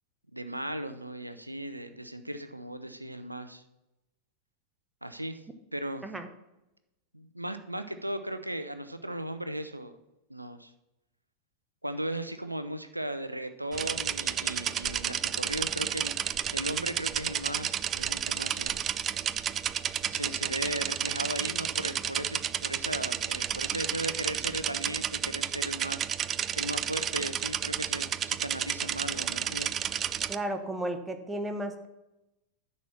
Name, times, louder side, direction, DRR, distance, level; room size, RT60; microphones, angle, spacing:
voice 1, 0.3-3.6 5.0-5.4 5.7-6.1 7.1-9.9 10.3-10.7 11.8-16.1 16.5-18.8 20.0-26.1 26.6-29.7, right 1 dB, 85° right, 10 dB, 0.6 m, -37 dB
sound 1, 13.7-30.4, right 9 dB, 25° right, 0.3 m, -31 dB
voice 2, 30.3-31.9, right 1 dB, 10° right, 7 dB, 1.0 m, -34 dB
10.5 x 4.3 x 7.1 m, 0.95 s
figure-of-eight pair, 90°, 0 cm